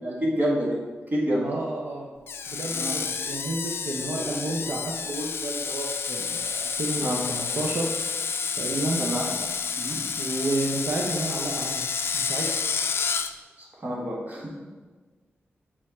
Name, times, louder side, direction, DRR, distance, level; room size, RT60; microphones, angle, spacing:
voice 1, 0.0-0.8 1.1-1.5 2.7-3.0 7.0-7.2 9.0-9.3 9.8-10.0 13.6-14.5, equal, 45° right, -4 dB, 1.8 m, -28 dB
voice 2, 1.4-2.1 2.5-7.9 8.5-9.1 10.1-11.9 12.1-12.6, right 2 dB, 75° right, -2 dB, 0.8 m, -31 dB
Screech, 2.3-13.3, left 6 dB, 65° left, 0.3 m, -30 dB
6.5 x 4.5 x 4.4 m, 1.4 s
wide cardioid pair, 160°, 4 cm